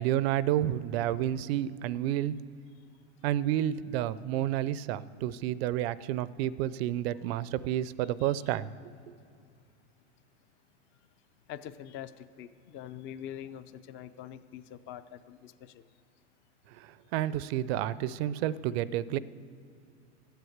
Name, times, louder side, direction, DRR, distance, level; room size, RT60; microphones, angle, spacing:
voice 1, 0.0-2.3 3.2-8.7 9.1-9.2 16.8-19.2, right 12 dB, 60° right, 18 dB, 0.5 m, -30 dB
voice 2, 8.2-8.6 11.5-15.8, left 10 dB, 35° left, 12 dB, 0.5 m, -44 dB
12.5 x 8.1 x 7.9 m, 2.4 s
supercardioid pair, 120°, 35 cm